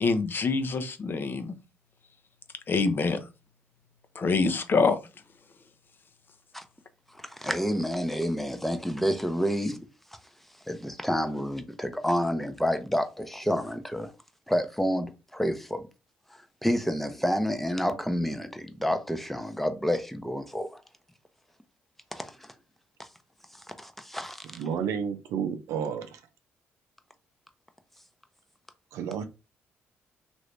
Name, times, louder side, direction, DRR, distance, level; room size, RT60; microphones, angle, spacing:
voice 1, 0.0-1.5 2.7-3.3 4.2-5.0, left 4 dB, 45° left, 0.6 m, -25 dB
voice 2, 7.2-9.8 10.7-14.1 14.5-15.9 16.3-20.8 22.1-22.5 23.0-23.1 23.5-24.5, equal, 5° left, 0.6 m, -29 dB
voice 3, 24.5-26.2 28.9-29.2, right 7 dB, 75° right, 0.5 m, -31 dB
2.9 x 2.6 x 3.2 m
supercardioid pair, 60°, 5 cm